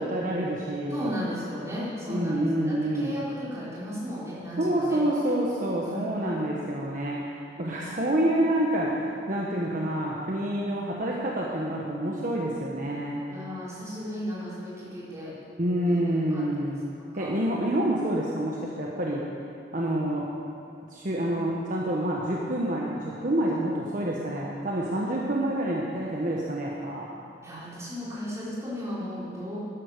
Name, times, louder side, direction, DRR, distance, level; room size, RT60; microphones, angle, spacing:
voice 1, 0.0-1.1 2.1-3.2 4.6-13.2 15.6-16.8 17.1-19.2 19.7-20.3 20.9-27.1, right 1 dB, 45° right, -3 dB, 1.3 m, -28 dB
voice 2, 0.9-5.0 5.8-6.4 7.7-8.3 13.3-15.3 15.9-16.4 17.0-17.6 27.4-29.6, equal, 15° right, -8 dB, 4.4 m, -35 dB
12.5 x 11.0 x 6.7 m, 2.5 s
head